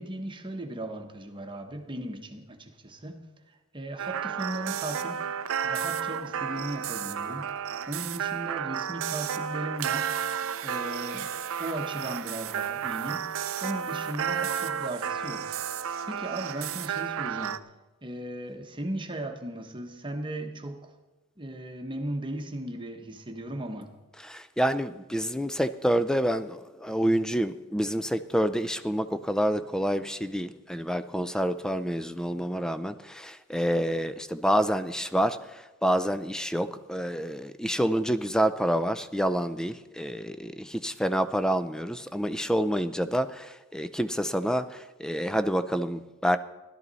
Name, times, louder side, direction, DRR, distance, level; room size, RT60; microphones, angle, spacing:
voice 1, 0.0-3.2 3.7-5.2 5.6-7.5 7.9-10.1 10.6-13.2 13.6-15.5 16.1-17.6 18.0-20.9 21.4-23.9, right 1 dB, 20° right, 4 dB, 1.1 m, -36 dB
sound 1, 4.0-17.6, right 8 dB, 65° right, 0.5 m, -32 dB
voice 2, 24.2-46.4, equal, 5° left, 12 dB, 0.4 m, -28 dB
16.5 x 12.0 x 4.1 m, 1.1 s
head